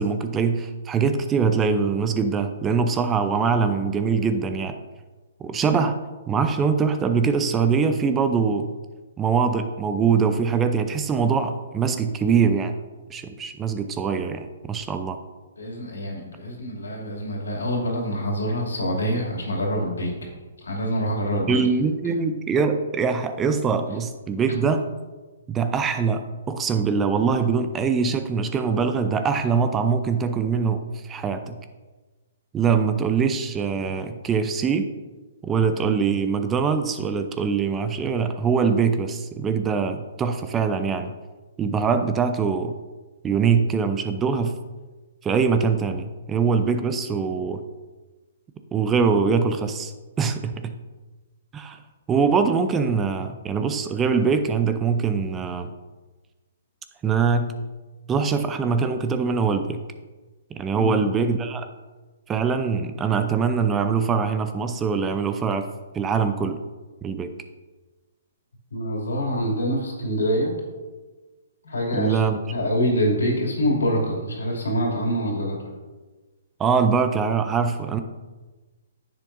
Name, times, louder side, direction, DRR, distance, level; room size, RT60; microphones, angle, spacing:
voice 1, 0.0-4.8 5.4-6.0 6.3-8.7 9.2-12.7 13.1-15.2 21.5-24.9 25.5-31.6 32.5-34.9 35.4-41.1 41.6-42.7 43.2-44.6 45.2-47.6 48.7-49.9 50.2-50.7 51.5-51.8 52.1-55.7 57.0-57.5 58.1-59.8 60.5-61.7 62.3-65.7 65.9-66.6 67.0-67.3 71.9-72.4 76.6-78.0, right 5 dB, 15° right, 8 dB, 0.5 m, -23 dB
voice 2, 15.6-20.3 20.6-21.6 60.7-61.0 68.7-70.5 71.6-72.2 72.5-75.6, equal, 80° left, -1 dB, 2.7 m, -25 dB
10.0 x 7.4 x 2.6 m, 1.2 s
hypercardioid pair, 130°, 0 cm